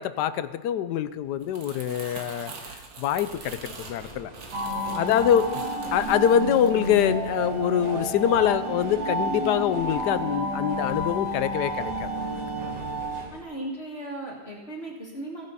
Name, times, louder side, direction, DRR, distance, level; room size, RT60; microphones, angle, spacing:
voice 1, 0.0-2.5 3.0-4.3 5.0-5.6 5.9-12.1, left 10 dB, 70° left, 13 dB, 1.1 m, -24 dB
Crumpling crinkling, 1.3-7.6 8.0-8.3, right 4 dB, 75° right, 2.1 m, -44 dB
sound 1, 3.1-13.4, right 1 dB, 25° right, 1.6 m, -45 dB
sound 2, 4.5-13.3, right 1 dB, 50° right, 1.5 m, -30 dB
voice 2, 4.7-5.1 13.3-15.5, right 1 dB, 35° left, -2 dB, 2.2 m, -37 dB
16.0 x 10.5 x 4.1 m, 1.3 s
omnidirectional pair, 2.0 m